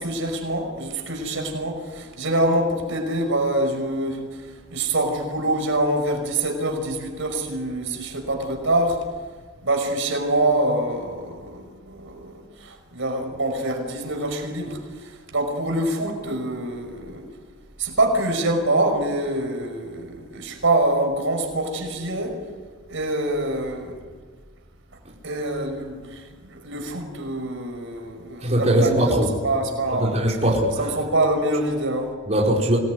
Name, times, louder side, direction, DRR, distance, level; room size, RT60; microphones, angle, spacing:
voice 1, 0.0-4.2 4.7-9.0 9.6-17.2 17.8-22.4 22.9-23.9 25.2-26.2 26.5-29.2 29.4-30.2 30.8-32.1, right 1 dB, 70° right, 4 dB, 5.5 m, -25 dB
voice 2, 28.4-29.3 30.0-30.7 32.3-32.8, right 1 dB, 35° right, -3 dB, 4.9 m, -20 dB
26.0 x 20.0 x 9.5 m, 1.5 s
head